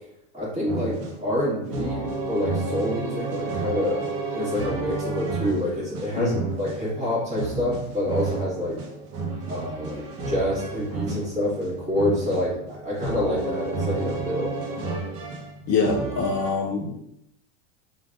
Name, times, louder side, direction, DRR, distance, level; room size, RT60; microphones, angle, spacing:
voice 1, 0.3-4.0 4.3-8.8 9.4-14.5, left 1 dB, 20° right, -6 dB, 1.4 m, -27 dB
sound 1, 0.7-16.5, right 3 dB, 45° right, 0.8 m, -31 dB
voice 2, 15.7-16.9, left 4 dB, 50° left, 0 dB, 0.6 m, -24 dB
3.2 x 2.3 x 2.5 m, 0.77 s
hypercardioid pair, 105°, 34 cm